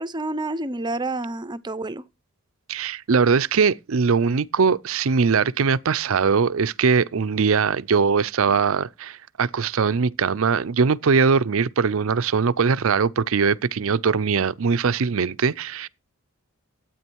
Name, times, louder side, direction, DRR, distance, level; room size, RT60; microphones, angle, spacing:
voice 1, 0.0-2.0, right 2 dB, 20° right, 0.6 m, -29 dB
voice 2, 2.7-15.9, right 5 dB, 65° right, 0.5 m, -21 dB
13.0 x 8.7 x 4.5 m
head